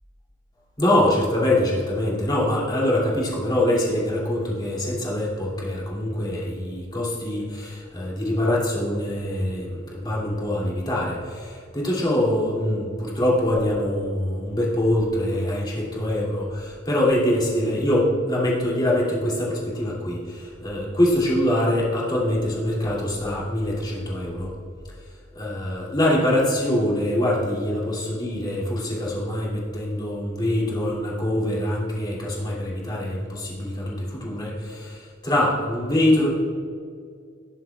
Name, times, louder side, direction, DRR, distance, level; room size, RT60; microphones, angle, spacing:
voice 1, 0.8-24.5 25.3-36.3, left 1 dB, 20° left, -5 dB, 2.7 m, -24 dB
19.0 x 7.5 x 2.4 m, 2.3 s
head